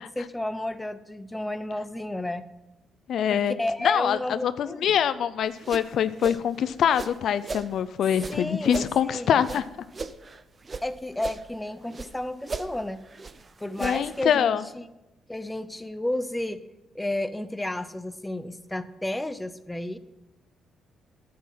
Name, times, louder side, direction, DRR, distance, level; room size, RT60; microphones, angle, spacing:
voice 1, 0.0-2.5 3.3-5.0 8.3-9.4 10.8-13.0 13.6-14.9 15.3-16.6 16.9-20.0, left 1 dB, 10° left, 12 dB, 0.6 m, -32 dB
voice 2, 3.1-3.6 3.8-9.6 13.8-14.6, left 9 dB, 70° left, 14 dB, 0.4 m, -24 dB
sound 1, 5.4-7.7 8.1-10.9 11.1-12.1 12.4-14.2, right 4 dB, 35° right, 0.6 m, -38 dB
10.5 x 8.5 x 5.6 m, 1.0 s
cardioid pair, 90°, 0 cm